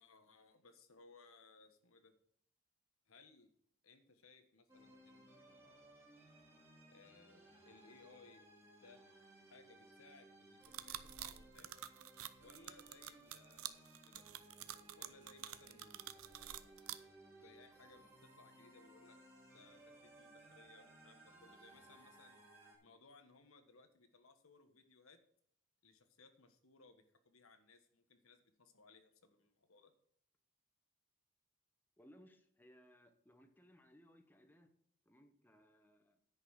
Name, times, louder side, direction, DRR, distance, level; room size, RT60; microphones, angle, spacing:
voice 1, 0.0-2.1 3.1-3.5 3.8-6.0 6.9-8.4 8.8-9.0 9.5-11.8 12.4-14.2 14.9-16.8 17.3-19.2 19.5-22.4 22.8-25.2 25.8-29.9, left 3 dB, 90° left, 8 dB, 1.4 m, -64 dB
sound 1, 4.7-22.8, right 1 dB, 15° right, 2.7 m, -62 dB
sound 2, 10.6-16.9, right 12 dB, 85° right, 0.7 m, -48 dB
voice 2, 32.0-34.7 35.0-36.2, equal, 10° left, 6 dB, 0.9 m, -64 dB
9.9 x 5.5 x 6.4 m, 0.66 s
head